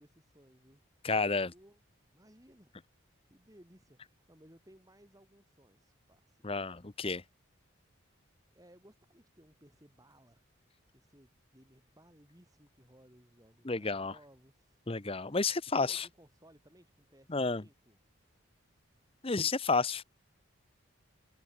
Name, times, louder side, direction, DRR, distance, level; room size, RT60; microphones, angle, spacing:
voice 1, 0.0-1.8 2.1-6.4 6.7-6.8 8.0-10.6 10.9-14.8 15.7-18.0, equal, 15° right, 4.3 m, -61 dB
voice 2, 1.0-1.5 6.4-7.2 13.6-14.1 14.9-16.1 17.3-17.6 19.2-20.0, left 4 dB, 25° left, 0.8 m, -31 dB
head